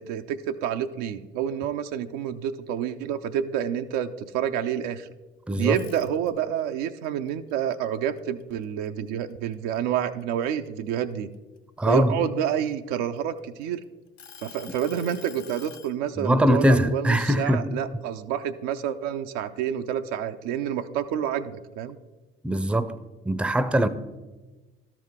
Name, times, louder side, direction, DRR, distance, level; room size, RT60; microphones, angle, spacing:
voice 1, 0.0-5.1 5.6-11.3 11.9-13.8 14.4-22.0, right 9 dB, 70° right, 0.5 m, -28 dB
voice 2, 5.5-5.8 11.8-12.2 16.2-17.7 22.4-23.0 23.2-23.9, equal, 5° right, 0.5 m, -21 dB
sound 1, 5.6-6.6 7.0-8.9 9.3-9.5 10.0-11.8 12.5-13.6 14.2-15.9, left 8 dB, 55° left, 0.9 m, -47 dB
13.0 x 4.8 x 3.6 m
figure-of-eight pair, 45°, 32 cm